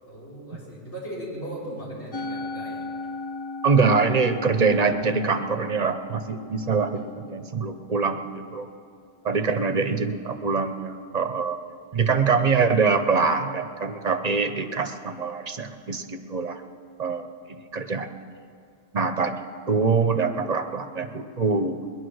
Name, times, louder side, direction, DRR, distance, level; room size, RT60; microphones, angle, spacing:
voice 1, 0.0-2.8 9.3-9.6, right 1 dB, 80° left, -6 dB, 4.2 m, -38 dB
Musical instrument, 2.1-8.5, left 3 dB, 25° left, 0.7 m, -38 dB
voice 2, 3.6-8.7 9.2-11.6 11.9-16.6 17.0-18.1 18.9-19.4 19.7-21.8, right 4 dB, 40° right, 8 dB, 0.8 m, -24 dB
20.0 x 11.0 x 6.3 m, 2.4 s
omnidirectional pair, 1.1 m